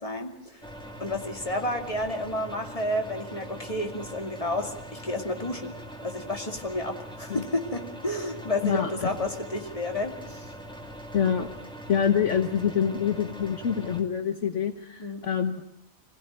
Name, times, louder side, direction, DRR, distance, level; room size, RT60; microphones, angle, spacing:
voice 1, 0.0-0.6 1.0-5.7 6.0-10.5 15.0-15.3, left 1 dB, 25° left, 3 dB, 2.4 m, -31 dB
sound 1, 0.6-14.0, equal, 5° left, 2.4 m, -42 dB
voice 2, 8.6-9.1 11.1-11.5 11.9-15.7, left 8 dB, 65° left, 7 dB, 1.4 m, -26 dB
24.5 x 16.5 x 9.0 m, 0.76 s
omnidirectional pair, 1.4 m